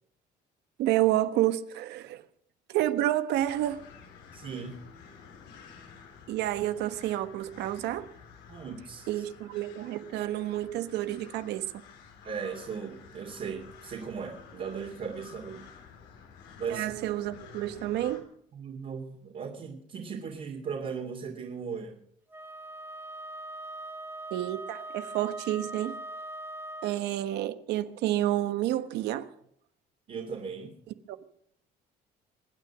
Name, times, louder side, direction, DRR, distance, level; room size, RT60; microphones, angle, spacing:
voice 1, 0.8-2.2 2.7-3.8 6.3-8.1 9.1-11.7 16.7-18.3 24.3-25.9 26.8-29.3 31.1-31.2, right 14 dB, 85° right, 1.2 m, -29 dB
sound 1, 3.3-18.2, left 6 dB, 90° left, 3.5 m, -51 dB
voice 2, 4.3-4.9 8.5-9.2 12.2-15.6 16.6-16.9 18.5-22.0 30.1-30.7, right 6 dB, 50° right, 3.1 m, -37 dB
Wind instrument woodwind instrument, 22.3-27.0, right 1 dB, 15° right, 1.2 m, -41 dB
24.5 x 9.4 x 6.2 m
cardioid pair, 110°, 17 cm